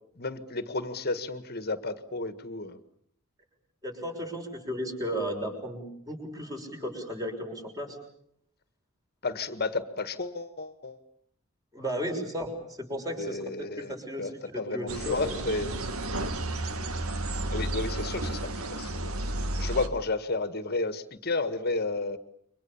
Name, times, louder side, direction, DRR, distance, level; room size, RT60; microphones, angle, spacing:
voice 1, 0.2-2.8 9.2-11.0 13.2-13.9 14.2-14.3 14.6-15.7 17.5-18.4 18.7-19.1 19.6-22.2, left 3 dB, 45° left, 11 dB, 1.7 m, -32 dB
voice 2, 3.8-8.0 11.7-15.2, equal, 15° right, 3 dB, 6.4 m, -35 dB
sound 1, 14.9-19.9, right 1 dB, 80° right, 2.2 m, -32 dB
29.5 x 24.0 x 7.1 m, 0.69 s
head